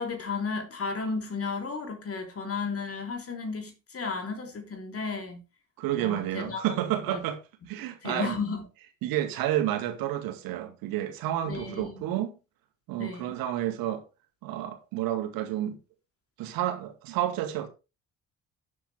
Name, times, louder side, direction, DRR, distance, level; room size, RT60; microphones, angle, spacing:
voice 1, 0.0-5.4 6.0-6.7 7.1-7.2 8.0-8.7 11.5-12.0 13.0-13.4, left 4 dB, 35° left, 3.7 m, -34 dB
voice 2, 5.8-7.4 7.7-8.3 9.0-12.3 12.9-14.0 14.4-15.8 16.4-17.7, right 12 dB, 60° right, 2.2 m, -30 dB
12.0 x 7.6 x 3.6 m
figure-of-eight pair, 50°, 39 cm